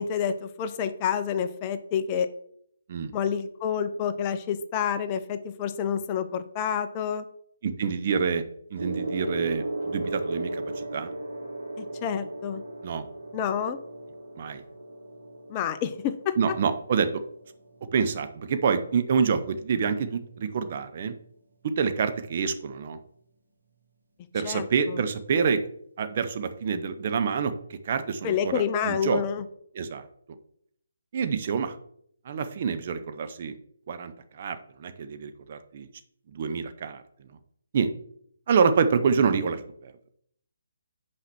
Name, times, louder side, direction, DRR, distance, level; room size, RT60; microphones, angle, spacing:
voice 1, 0.0-2.3 3.1-7.3 11.8-12.6 13.3-13.8 15.5-16.3 24.4-25.0 28.2-29.4, left 8 dB, 25° left, 10 dB, 0.6 m, -28 dB
voice 2, 7.6-8.4 8.7-11.1 12.8-13.1 14.4-14.6 16.4-17.2 17.9-21.1 21.6-23.0 24.3-25.6 26.0-29.2 29.7-30.0 31.1-31.8 32.2-33.5 33.9-35.9 36.3-37.0 37.7-37.9 38.5-39.9, right 6 dB, 45° right, 9 dB, 0.8 m, -27 dB
Gong, 8.8-18.5 19.5-19.7, right 2 dB, 80° right, 2.9 m, -36 dB
5.9 x 4.9 x 6.1 m, 0.67 s
figure-of-eight pair, 145°, 0 cm